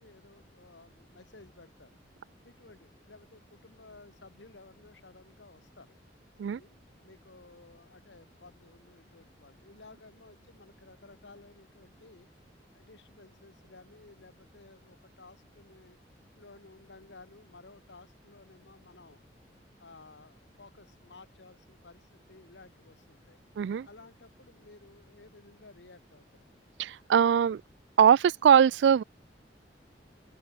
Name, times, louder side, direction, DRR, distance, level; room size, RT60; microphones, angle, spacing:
voice 1, 0.0-2.0 2.4-6.0 6.5-12.3 12.7-16.0 16.4-19.2 19.8-23.4 23.8-26.5, left 3 dB, 80° left, 1.7 m, -55 dB
voice 2, 23.6-23.9 26.8-27.6 28.0-29.0, right 8 dB, 70° right, 0.3 m, -21 dB
open air
head